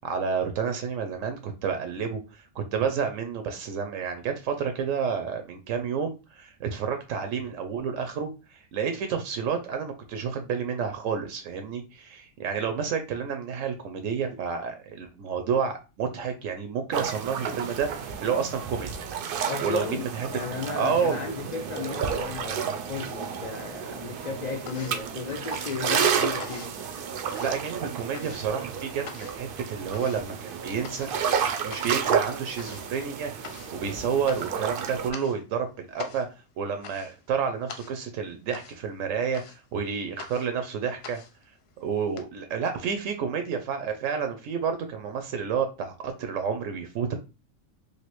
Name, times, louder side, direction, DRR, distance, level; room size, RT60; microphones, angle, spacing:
voice 1, 0.0-18.9 19.6-20.3 20.7-21.2 27.4-31.1 31.6-33.5 33.7-36.3 36.6-41.2 41.8-47.1, right 6 dB, 85° right, 1.0 m, -30 dB
sound 1, 16.9-35.1, right 7 dB, 60° right, 0.6 m, -31 dB
voice 2, 19.5-26.8, left 5 dB, 90° left, 0.3 m, -35 dB
sound 2, 24.6-42.2, left 6 dB, 60° left, 0.8 m, -46 dB
3.2 x 2.6 x 3.0 m
omnidirectional pair, 1.3 m